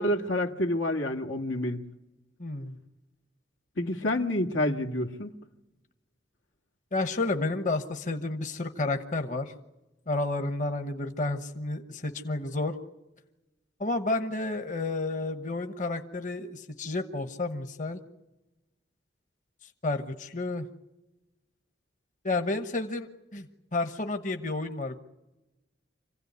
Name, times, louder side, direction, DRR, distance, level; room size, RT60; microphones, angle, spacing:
voice 1, 0.0-1.8 3.8-5.3, left 1 dB, 85° left, 5 dB, 1.9 m, -28 dB
voice 2, 2.4-2.8 6.9-9.5 10.1-12.7 13.8-18.0 19.6-20.7 22.2-23.5 23.7-25.0, left 2 dB, 40° left, 7 dB, 1.1 m, -31 dB
26.5 x 16.5 x 9.5 m, 1.0 s
head